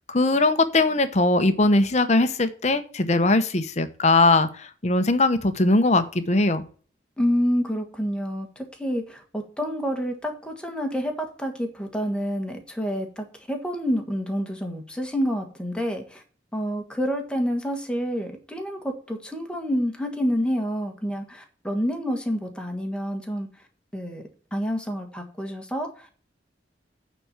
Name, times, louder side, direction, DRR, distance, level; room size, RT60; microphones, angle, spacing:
voice 1, 0.1-6.6, left 2 dB, 40° left, 11 dB, 0.9 m, -20 dB
voice 2, 7.2-16.2 16.5-23.5 23.9-26.1, equal, 5° left, 3 dB, 1.5 m, -28 dB
9.1 x 4.3 x 7.2 m, 0.41 s
head